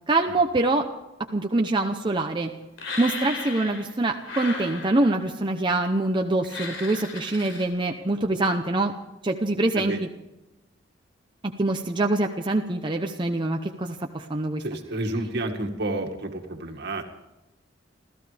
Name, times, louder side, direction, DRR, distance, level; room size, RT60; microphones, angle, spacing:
voice 1, 0.1-0.8 1.3-2.5 3.0-8.9 9.2-10.1 11.4-14.6, right 2 dB, 25° right, 3 dB, 0.8 m, -24 dB
sound 1, 2.8-3.9 4.2-5.3 6.4-7.6, left 3 dB, 80° left, 3.9 m, -35 dB
voice 2, 14.6-17.0, right 2 dB, 60° right, 4 dB, 2.0 m, -30 dB
28.5 x 14.5 x 3.4 m, 1.0 s
head